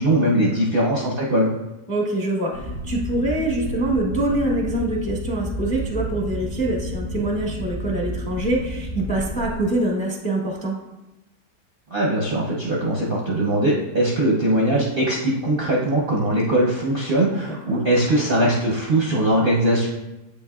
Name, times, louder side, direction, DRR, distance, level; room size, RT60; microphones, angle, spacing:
voice 1, 0.0-1.5 11.9-19.9, right 1 dB, 50° right, -4 dB, 0.7 m, -21 dB
voice 2, 1.9-10.7 17.5-17.8, right 1 dB, 5° left, -2 dB, 0.7 m, -25 dB
sound 1, 2.5-9.6, equal, 80° left, 2.0 m, -31 dB
7.9 x 5.3 x 2.3 m, 1.0 s
omnidirectional pair, 1.7 m